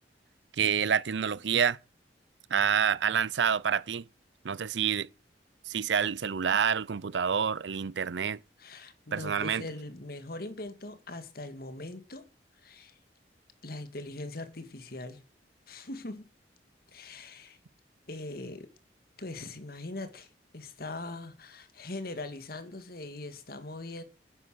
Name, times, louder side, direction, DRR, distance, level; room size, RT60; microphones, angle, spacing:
voice 1, 0.6-1.8 2.5-4.1 4.4-5.1 5.7-8.4 9.1-9.7, right 7 dB, 80° right, 0.6 m, -28 dB
voice 2, 8.6-12.3 12.6-13.0 13.6-15.2 15.7-16.3 16.9-17.6 18.1-18.7 19.2-20.3 20.5-24.0, left 2 dB, 55° left, 1.9 m, -41 dB
10.0 x 9.8 x 7.7 m
head